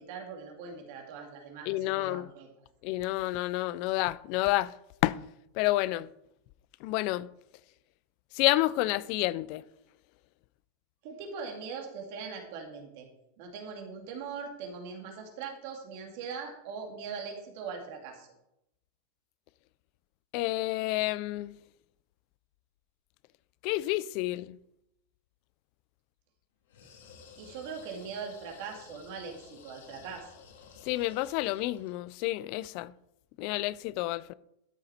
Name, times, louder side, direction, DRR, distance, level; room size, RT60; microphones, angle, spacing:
voice 1, 0.0-2.5 11.0-13.1 13.4-18.3 27.4-30.3, right 5 dB, 45° right, 2.2 m, -41 dB
voice 2, 1.7-2.3 2.8-4.7 5.0-5.2 5.5-6.1 6.8-7.3 8.3-9.6 20.3-21.6 23.6-24.6 30.8-32.9 33.4-34.3, left 17 dB, 35° left, 0.3 m, -29 dB
sound 1, 26.7-32.0, left 6 dB, 85° left, 2.9 m, -53 dB
12.5 x 6.6 x 4.3 m
supercardioid pair, 180°, 0 cm